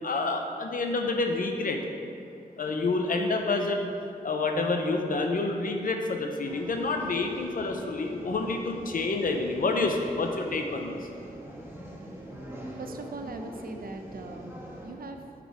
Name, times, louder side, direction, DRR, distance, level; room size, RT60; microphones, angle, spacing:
voice 1, 0.0-1.8 2.6-3.9 4.2-10.9, left 3 dB, 65° left, 3 dB, 0.7 m, -28 dB
sound 1, 6.4-14.9, equal, 15° right, 1.5 m, -43 dB
voice 2, 12.8-14.6 14.8-15.2, right 3 dB, 75° right, 5 dB, 0.6 m, -40 dB
8.0 x 5.1 x 4.5 m, 2.5 s
wide cardioid pair, 90°, 15 cm